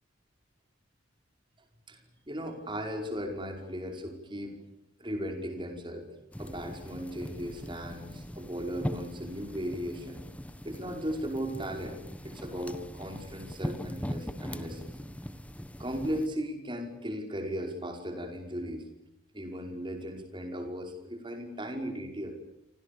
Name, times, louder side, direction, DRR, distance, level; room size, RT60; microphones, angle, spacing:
voice 1, 2.3-4.6 5.0-6.1 6.4-10.2 10.6-12.0 12.2-14.9 15.8-18.9 19.3-22.3, equal, 25° right, 4 dB, 5.3 m, -36 dB
sound 1, 6.3-16.3, equal, 5° left, 1.3 m, -40 dB
30.0 x 25.5 x 7.0 m, 0.86 s
head